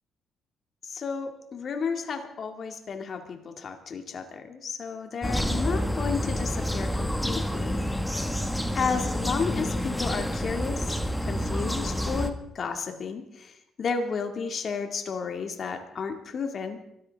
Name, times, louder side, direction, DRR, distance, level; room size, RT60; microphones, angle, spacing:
voice 1, 0.8-7.9 8.7-16.8, left 5 dB, 50° left, 5 dB, 2.0 m, -32 dB
sound 1, 5.2-12.3, equal, 5° left, 1.5 m, -28 dB
24.0 x 13.5 x 3.5 m, 0.77 s
cardioid pair, 90°, 0 cm